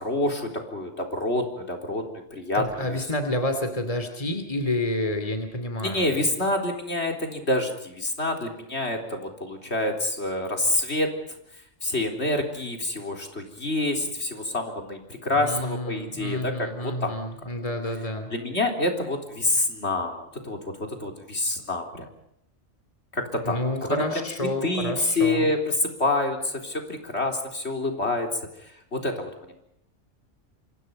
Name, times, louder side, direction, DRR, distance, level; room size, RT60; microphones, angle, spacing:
voice 1, 0.0-2.0 2.3-3.0 5.8-11.1 11.8-17.2 18.3-22.1 23.1-23.6 23.9-28.3 28.6-29.3, left 2 dB, 60° left, 3 dB, 4.2 m, -27 dB
voice 2, 2.5-6.2 15.3-18.3 23.4-25.5, left 1 dB, 30° left, 7 dB, 2.9 m, -29 dB
28.5 x 25.5 x 5.4 m, 0.76 s
omnidirectional pair, 1.3 m